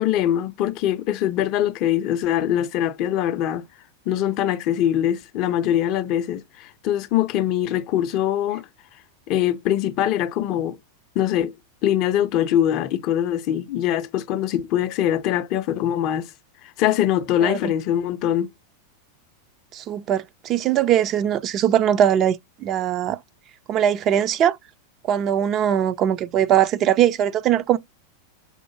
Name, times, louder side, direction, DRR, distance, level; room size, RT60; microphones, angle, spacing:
voice 1, 0.0-3.6 4.1-8.7 9.3-10.8 11.2-11.5 11.8-16.3 16.6-18.5, left 11 dB, 40° left, 0.4 m, -23 dB
voice 2, 17.4-17.7 19.7-23.2 23.7-24.6 25.1-27.8, right 10 dB, 35° right, 0.3 m, -21 dB
5.5 x 2.0 x 3.0 m
figure-of-eight pair, 90°, 0 cm